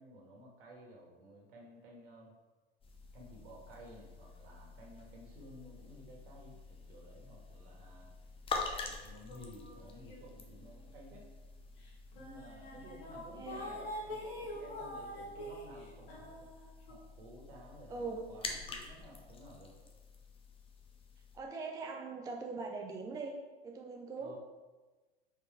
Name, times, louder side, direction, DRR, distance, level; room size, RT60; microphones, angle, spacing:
voice 1, 0.0-2.3 3.1-8.1 8.8-11.3 12.1-16.5 16.9-19.7 24.2-24.4, equal, 60° right, -1 dB, 1.9 m, -54 dB
sound 1, 2.8-21.4, left 4 dB, 15° left, 0.8 m, -47 dB
sound 2, 9.3-10.6 11.0-11.2 11.9-12.0 12.2-16.9, left 1 dB, 55° left, 1.7 m, -45 dB
voice 2, 13.3-13.8 17.9-18.3 21.3-24.3, right 4 dB, 10° right, 2 dB, 0.5 m, -42 dB
5.0 x 4.7 x 4.4 m, 1.3 s
figure-of-eight pair, 85°, 32 cm